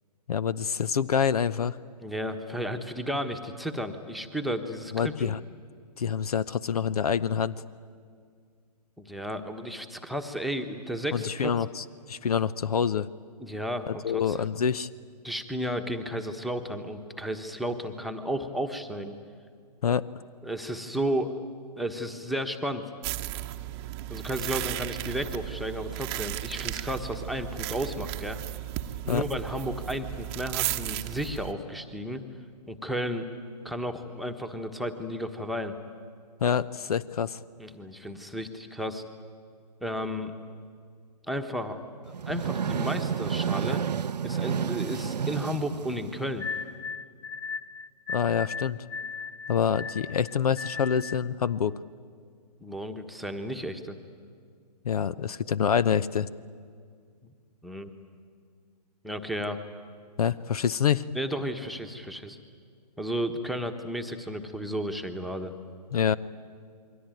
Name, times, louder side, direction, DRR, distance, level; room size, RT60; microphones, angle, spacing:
voice 1, 0.3-1.8 4.9-5.4 6.0-7.6 11.1-13.1 13.9-14.9 19.8-20.1 29.1-29.2 36.4-37.4 48.1-48.8 49.5-51.8 54.8-56.3 60.2-61.0 65.9-66.2, left 7 dB, 60° left, 19 dB, 0.8 m, -26 dB
voice 2, 2.0-5.3 9.0-11.5 13.4-14.5 15.2-19.2 20.4-21.4 21.8-22.9 24.1-28.4 29.0-32.2 32.7-33.2 33.6-35.7 37.6-39.0 39.8-40.3 41.3-41.8 42.2-43.8 44.2-46.5 52.6-54.0 57.2-57.3 57.6-57.9 59.0-59.6 61.1-62.4 63.0-65.5, equal, ahead, 9 dB, 1.3 m, -33 dB
sound 1, 23.0-31.5, right 16 dB, 25° right, 1.0 m, -35 dB
sound 2, 42.1-46.6, right 7 dB, 75° right, 0.7 m, -30 dB
sound 3, 46.4-51.3, left 5 dB, 20° left, 0.9 m, -37 dB
28.5 x 22.5 x 9.2 m, 2.1 s
figure-of-eight pair, 135°, 21 cm